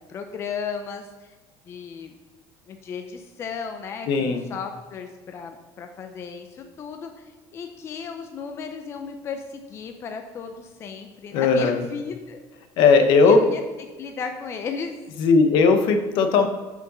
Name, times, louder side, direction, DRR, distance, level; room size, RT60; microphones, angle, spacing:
voice 1, 0.1-1.3 1.7-2.1 2.7-12.4 12.8-12.9 13.2-13.6 14.0-15.0, left 6 dB, 30° left, 5 dB, 0.5 m, -35 dB
voice 2, 4.1-4.4 11.3-11.8 12.8-13.4 15.2-16.5, left 4 dB, 65° left, 7 dB, 0.9 m, -17 dB
6.6 x 5.1 x 5.3 m, 1.3 s
cardioid pair, 165°, 9 cm